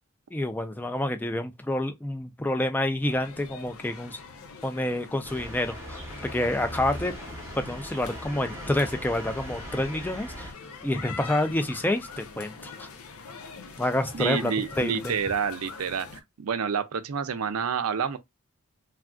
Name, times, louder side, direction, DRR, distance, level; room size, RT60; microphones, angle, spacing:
voice 1, 0.3-4.2 4.6-7.1 7.5-10.5 10.8-12.9 13.8-14.5 14.8-15.1, left 1 dB, 10° left, 0.3 m, -28 dB
sound 1, 3.0-16.2, left 5 dB, 80° left, 0.6 m, -43 dB
sound 2, 5.2-10.5, equal, 10° right, 0.8 m, -40 dB
voice 2, 14.1-16.1 16.4-18.2, right 6 dB, 90° right, 0.5 m, -28 dB
3.4 x 2.4 x 2.2 m
head